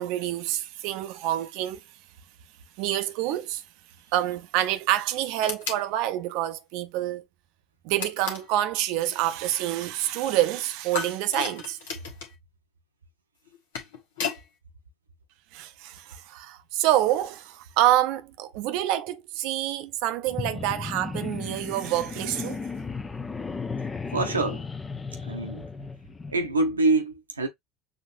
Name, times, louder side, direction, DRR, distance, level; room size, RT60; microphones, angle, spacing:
voice 1, 0.0-1.8 2.8-3.6 4.1-7.2 7.8-11.8 15.5-22.6, right 13 dB, 60° right, 0.7 m, -27 dB
sound 1, 5.4-5.9 8.0-8.5 10.9-12.3 13.5-14.4, left 5 dB, 70° left, 1.2 m, -33 dB
sound 2, 20.3-26.5, left 4 dB, 20° left, 0.7 m, -35 dB
voice 2, 24.1-24.7 25.2-25.7 26.3-27.5, right 2 dB, 85° right, 1.0 m, -25 dB
6.5 x 2.8 x 2.5 m
figure-of-eight pair, 70°, 0 cm